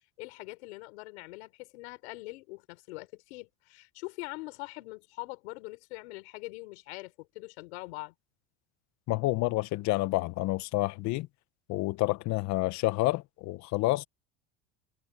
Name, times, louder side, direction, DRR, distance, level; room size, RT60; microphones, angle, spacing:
voice 1, 0.2-8.1, left 23 dB, 80° left, 4.3 m, -43 dB
voice 2, 9.1-11.3 11.7-14.0, left 20 dB, 55° left, 1.1 m, -29 dB
supercardioid pair, 110°, 33 cm